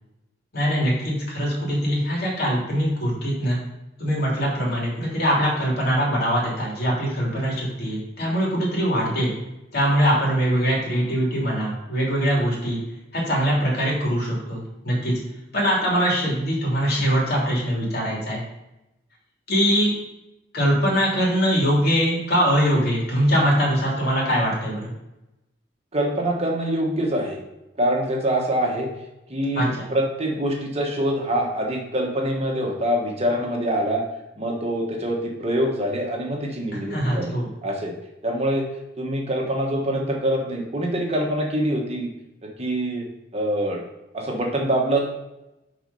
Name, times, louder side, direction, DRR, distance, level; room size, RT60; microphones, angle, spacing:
voice 1, 0.5-3.6 4.0-9.3 9.7-12.8 13.1-15.1 15.5-18.4 19.5-19.9 20.5-24.9 29.5-29.9 36.9-37.5, equal, 55° left, -4 dB, 2.8 m, -22 dB
voice 2, 25.9-27.4 27.8-28.9 29.3-34.0 34.4-37.4 37.6-37.9 38.2-38.7 39.0-42.1 42.4-43.0 43.3-43.8 44.1-45.1, right 1 dB, 35° right, 0 dB, 1.3 m, -24 dB
6.9 x 4.3 x 5.4 m, 0.94 s
head